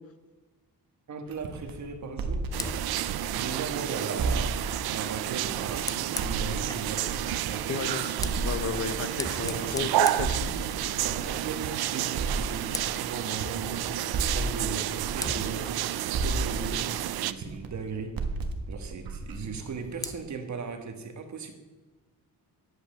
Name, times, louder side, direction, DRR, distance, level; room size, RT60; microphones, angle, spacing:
voice 1, 1.1-2.5 3.3-4.6 4.9-7.1 7.5-7.8 9.3-9.9 11.0-18.2 18.7-21.5, right 5 dB, 50° right, 1.5 m, -38 dB
sound 1, 1.3-3.7 4.2-7.7 8.2-11.7 12.1-15.8 16.1-20.2, right 3 dB, 65° right, 1.5 m, -34 dB
Fire, 2.5-7.0 7.8-11.1 11.5-11.7 12.1-13.1 14.5-14.7 15.2-17.5 19.4-20.2, left 2 dB, 10° left, 0.5 m, -42 dB
sound 2, 2.5-17.3, right 13 dB, 85° right, 0.6 m, -31 dB
voice 2, 7.7-10.6, left 5 dB, 40° left, 1.0 m, -34 dB
10.0 x 8.6 x 7.5 m
cardioid pair, 140°, 37 cm